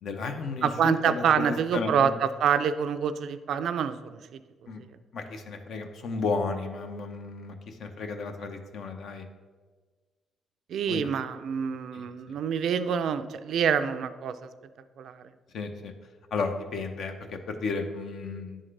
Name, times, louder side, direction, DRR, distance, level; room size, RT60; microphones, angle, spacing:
voice 1, 0.0-2.1 4.7-4.8 5.1-9.2 10.9-11.1 11.9-12.0 15.5-15.9 16.3-18.6, left 4 dB, 65° left, 6 dB, 0.7 m, -33 dB
voice 2, 0.6-4.0 4.3-4.4 4.8-4.9 10.7-14.5 15.0-15.2, right 7 dB, 70° right, 11 dB, 0.3 m, -26 dB
9.8 x 3.7 x 3.2 m, 1.4 s
cardioid pair, 90°, 0 cm